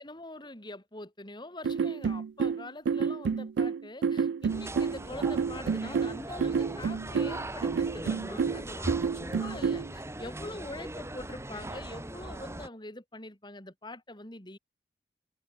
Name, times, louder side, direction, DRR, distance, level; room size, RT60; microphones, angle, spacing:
voice 1, 0.0-14.6, left 2 dB, 25° left, 6.0 m, -44 dB
sound 1, 1.6-9.9, right 6 dB, 75° right, 0.4 m, -29 dB
sound 2, 4.5-12.7, right 1 dB, 15° right, 3.3 m, -40 dB
head